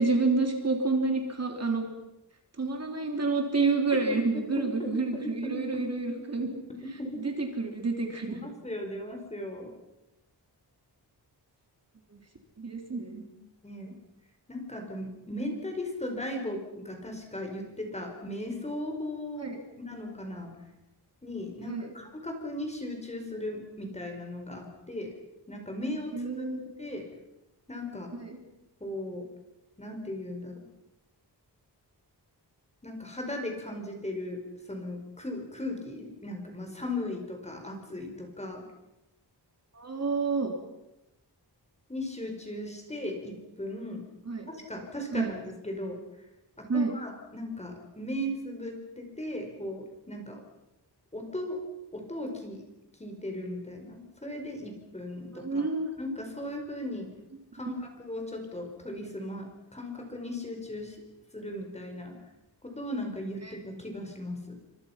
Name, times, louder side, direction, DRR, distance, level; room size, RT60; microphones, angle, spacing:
voice 1, 0.0-1.9 2.6-6.5 7.2-8.4 12.6-13.2 19.4-19.6 21.7-21.9 26.1-26.7 28.1-28.4 39.8-40.5 44.3-44.5 45.1-45.3 46.7-47.0 55.3-55.9 63.5-63.6, right 3 dB, 40° right, 3 dB, 3.5 m, -29 dB
voice 2, 4.1-5.6 6.4-6.6 7.0-7.2 8.3-9.7 13.6-13.9 14.5-19.6 19.9-20.5 21.2-25.1 25.5-26.3 26.8-27.0 27.7-28.1 28.8-29.3 29.8-30.7 32.8-34.4 34.7-38.6 41.9-44.0 44.5-46.0 46.6-50.4 51.1-51.6 51.9-52.6 53.0-55.7 56.0-57.1 57.5-59.5 59.7-61.0 61.3-62.2 62.6-64.6, left 1 dB, 15° left, 3 dB, 5.0 m, -37 dB
29.5 x 25.5 x 5.9 m, 0.92 s
wide cardioid pair, 165°, 41 cm